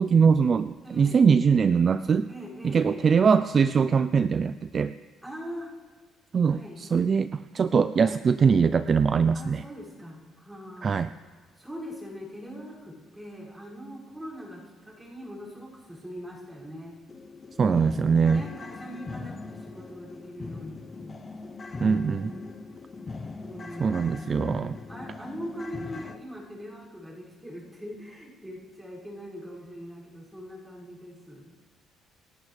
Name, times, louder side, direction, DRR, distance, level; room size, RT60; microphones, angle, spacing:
voice 1, 0.0-2.3 2.6-4.9 6.3-9.6 10.8-11.1 17.6-18.4 21.8-22.3 23.8-24.8, right 6 dB, 40° right, 13 dB, 0.4 m, -22 dB
voice 2, 0.8-1.2 2.3-3.1 5.2-5.7 6.4-6.8 8.0-8.2 9.3-11.0 11.6-16.9 18.2-21.2 21.7-22.6 23.4-24.3 24.9-31.5, equal, 10° right, -5 dB, 6.1 m, -42 dB
sound 1, 16.2-16.3 16.7-16.8 17.1-26.2, left 3 dB, 30° left, 0.9 m, -40 dB
28.0 x 11.5 x 3.4 m, 1.5 s
cardioid pair, 100°, 0 cm